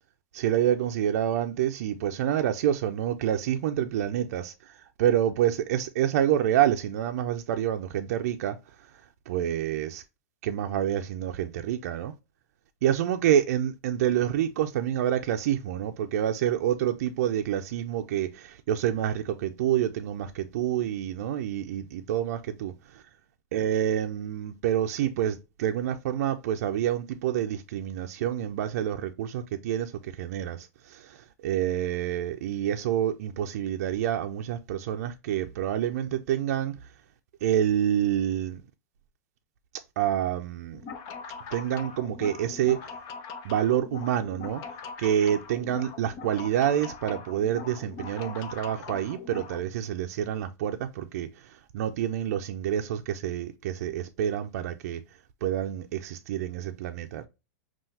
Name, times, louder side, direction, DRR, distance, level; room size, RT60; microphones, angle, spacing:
voice 1, 0.3-8.9 9.3-10.0 10.4-12.1 12.8-23.0 23.5-36.8 37.4-38.6 40.0-40.8 41.5-42.9 43.4-44.6 45.0-55.0 55.4-57.3, right 10 dB, 65° right, 0.5 m, -28 dB
sound 1, 40.7-49.6, left 5 dB, 40° left, 0.7 m, -41 dB
5.6 x 2.4 x 2.7 m
hypercardioid pair, 135°, 9 cm